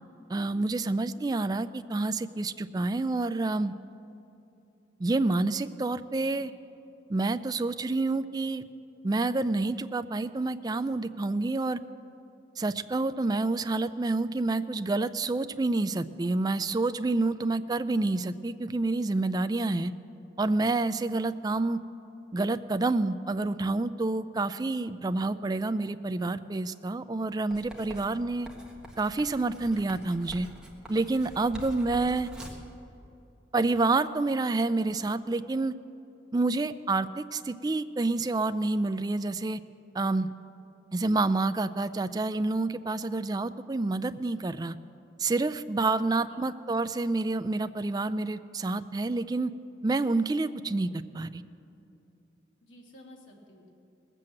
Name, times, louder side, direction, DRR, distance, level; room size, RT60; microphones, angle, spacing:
voice 1, 0.3-3.7 5.0-6.5 7.1-8.6 9.0-11.8 12.6-19.9 20.4-21.8 22.3-28.5 29.0-30.5 30.9-32.3 33.5-35.7 36.3-39.6 39.9-40.3 40.9-44.8 45.2-49.5 49.8-51.4, right 2 dB, 20° right, 12 dB, 0.3 m, -28 dB
Writing, 27.5-32.7, right 1 dB, 5° right, 1.4 m, -46 dB
voice 2, 52.6-53.7, left 1 dB, 85° left, -1 dB, 2.7 m, -53 dB
19.0 x 7.6 x 7.7 m, 2.8 s
head